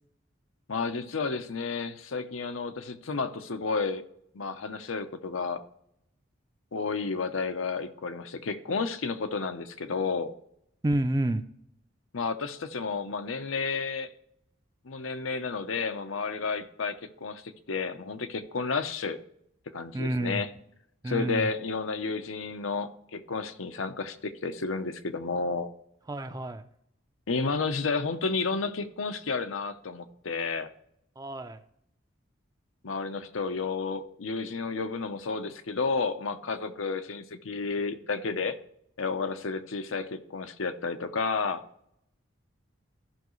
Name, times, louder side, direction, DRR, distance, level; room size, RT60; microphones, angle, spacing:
voice 1, 0.7-4.0 4.3-5.6 6.7-10.3 12.1-14.1 14.8-19.2 19.7-20.5 21.1-25.7 27.3-30.7 32.8-38.6 39.0-41.6, left 4 dB, 90° left, 9 dB, 0.7 m, -31 dB
voice 2, 10.8-11.4 19.9-20.4 21.0-21.5 26.1-26.6 31.2-31.6, right 1 dB, 20° right, 10 dB, 0.4 m, -29 dB
14.5 x 5.6 x 3.1 m, 0.74 s
head